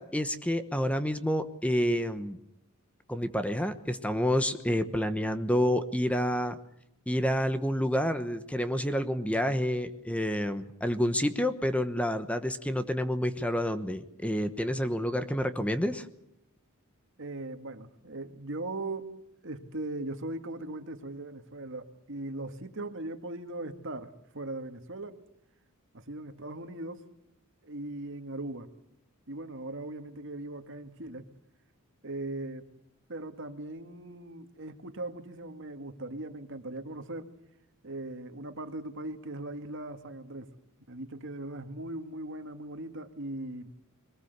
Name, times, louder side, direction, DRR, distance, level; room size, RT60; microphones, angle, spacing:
voice 1, 0.0-2.4 3.1-6.6 7.1-16.1, equal, 5° left, 10 dB, 1.1 m, -29 dB
voice 2, 17.2-19.1 19.4-25.2 25.9-27.0 27.6-28.7 29.3-31.3 32.0-32.6 33.1-37.3 37.8-40.5 40.9-43.7, right 2 dB, 60° right, 7 dB, 2.0 m, -39 dB
23.0 x 19.5 x 8.2 m, 0.78 s
head